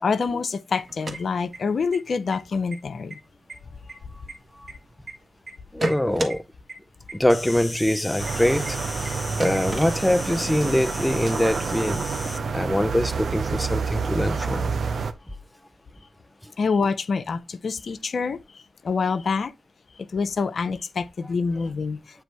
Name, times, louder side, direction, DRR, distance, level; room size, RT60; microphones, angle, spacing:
voice 1, 0.0-3.2 16.6-18.4 18.8-19.5 20.1-22.0, left 5 dB, 70° left, 0.5 m, -26 dB
sound 1, 0.8-2.0 2.3-2.4 2.7-3.2 3.5-5.1 5.5-6.4 6.7-6.8 7.1-7.2 7.5-7.6 7.9-8.0 8.3-8.4 8.7-8.8 9.1-9.2 9.4-10.4, right 1 dB, 55° right, 1.5 m, -31 dB
voice 2, 5.7-6.4 7.1-8.8 9.4-12.1 12.5-14.7, left 1 dB, 10° left, 0.5 m, -23 dB
Insect, 7.3-12.4, left 2 dB, 30° left, 0.9 m, -37 dB
sound 2, 8.2-15.1, right 5 dB, 70° right, 0.6 m, -28 dB
7.9 x 3.0 x 4.5 m
supercardioid pair, 40°, 0 cm